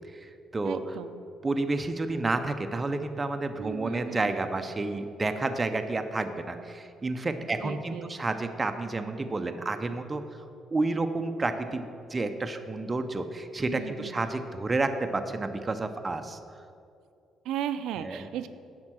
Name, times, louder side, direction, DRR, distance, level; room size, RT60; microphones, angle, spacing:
voice 1, 0.1-1.0 1.4-10.2 10.7-16.4 18.0-18.3, right 2 dB, 15° right, 7 dB, 0.4 m, -30 dB
voice 2, 0.6-1.2 3.6-4.5 7.6-8.1 13.7-14.2 17.4-18.5, right 10 dB, 85° right, 10 dB, 0.4 m, -36 dB
10.5 x 4.4 x 7.4 m, 2.5 s
cardioid pair, 180°, 0 cm